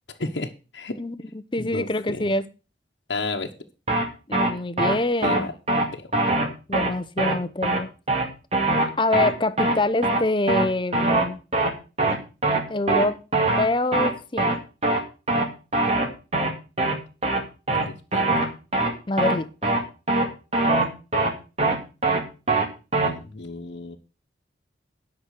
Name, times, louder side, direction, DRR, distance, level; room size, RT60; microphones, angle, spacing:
voice 1, 0.2-1.0 1.6-2.3 3.1-3.5 5.2-5.5 5.9-6.1 17.7-18.5 23.0-24.0, left 3 dB, 80° left, 1.1 m, -32 dB
voice 2, 1.0-2.5 4.3-5.5 6.7-7.9 9.0-11.4 12.7-13.2 13.6-14.6 19.1-19.7, left 2 dB, 25° left, 0.7 m, -25 dB
sound 1, 3.9-4.0 4.3-4.5 4.8-4.9 5.2-5.4 5.7-5.8 6.1-6.5 6.7-6.9 7.2-7.3 7.6-7.8 8.1-8.2 8.5-8.8 9.1-9.3 9.6-9.8 10.0-10.2 10.5-10.7 10.9-11.2 11.5-11.7 12.0-12.2 12.4-12.6 12.9-13.1 13.3-13.7 13.9-14.1 14.4-14.5 14.8-15.0 15.3-15.4 15.7-16.1 16.3-16.5 16.8-16.9 17.2-17.4 17.7-17.8 18.1-18.5 18.7-18.9 19.2-19.3 19.6-19.8 20.1-20.2 20.5-20.8 21.1-21.3 21.6-21.8 22.0-22.2 22.5-22.7 22.9-23.1, right 2 dB, 35° right, 2.1 m, -21 dB
11.5 x 6.0 x 6.5 m
head